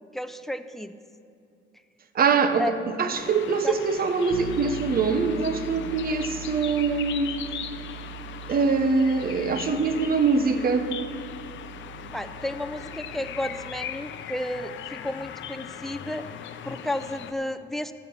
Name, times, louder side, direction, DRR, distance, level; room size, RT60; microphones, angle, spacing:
voice 1, 0.1-0.9 2.6-2.7 3.6-3.8 12.1-16.3 16.6-17.9, left 1 dB, ahead, 10 dB, 0.6 m, -32 dB
voice 2, 2.1-2.7 3.0-7.4 8.5-10.9, right 4 dB, 50° right, 8 dB, 1.0 m, -23 dB
sound 1, 3.1-17.3, left 9 dB, 70° left, 0.6 m, -39 dB
Bass guitar, 4.3-14.1, right 10 dB, 85° right, 0.9 m, -41 dB
14.5 x 5.9 x 7.1 m, 2.5 s
cardioid pair, 90°, 20 cm